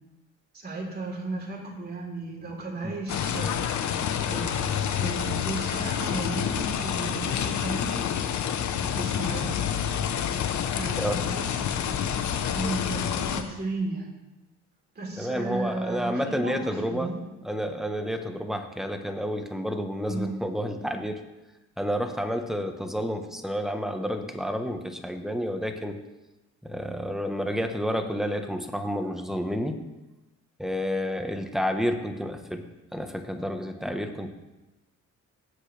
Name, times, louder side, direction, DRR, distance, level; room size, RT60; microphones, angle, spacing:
voice 1, 0.5-3.7 4.3-7.9 8.8-9.7 9.9-10.1 10.7-12.0 12.5-14.1 15.0-17.2 20.1-20.7, right 2 dB, 30° right, -2 dB, 3.7 m, -34 dB
sound 1, 3.1-13.4, left 8 dB, 70° left, 1.0 m, -28 dB
voice 2, 15.2-17.1 17.4-21.2 21.8-26.0 26.6-29.8 30.6-32.6 32.9-34.3, equal, ahead, 6 dB, 1.3 m, -30 dB
18.0 x 7.7 x 3.4 m, 1.0 s
cardioid pair, 90°, 30 cm